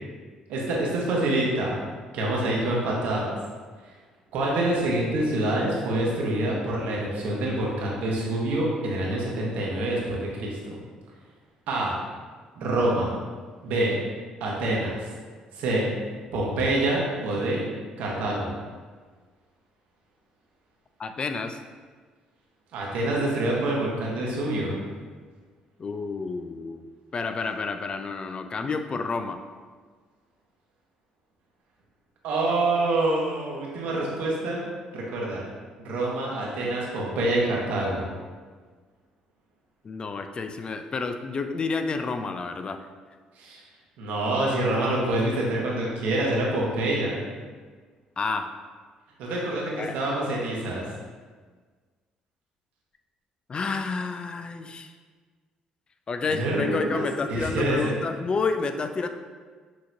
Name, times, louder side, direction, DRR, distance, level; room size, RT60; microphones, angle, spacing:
voice 1, 0.5-1.8 2.1-3.3 4.3-10.8 11.7-12.0 12.5-13.1 13.6-14.0 14.4-15.0 15.5-15.9 16.3-17.6 18.0-18.5 22.7-24.8 32.2-34.6 34.9-35.5 35.8-38.0 43.4-43.6 44.0-47.2 49.2-50.9 56.3-57.0 57.3-57.9, right 1 dB, 80° right, -3 dB, 1.1 m, -26 dB
voice 2, 21.0-21.6 25.8-26.8 27.1-29.4 39.8-42.8 48.2-48.5 49.8-50.0 53.5-54.9 56.1-59.1, left 4 dB, 40° left, 7 dB, 0.3 m, -30 dB
6.2 x 2.9 x 2.6 m, 1.5 s
supercardioid pair, 75°, 2 cm